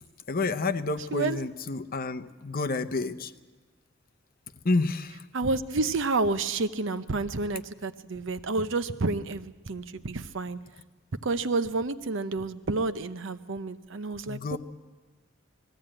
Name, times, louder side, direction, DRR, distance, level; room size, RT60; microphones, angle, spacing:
voice 1, 0.3-3.3 4.6-5.2 14.3-14.6, left 3 dB, 45° left, 9 dB, 0.8 m, -29 dB
voice 2, 5.3-10.6 11.2-14.6, right 3 dB, 70° right, 11 dB, 0.8 m, -29 dB
20.0 x 15.5 x 8.8 m, 1.3 s
head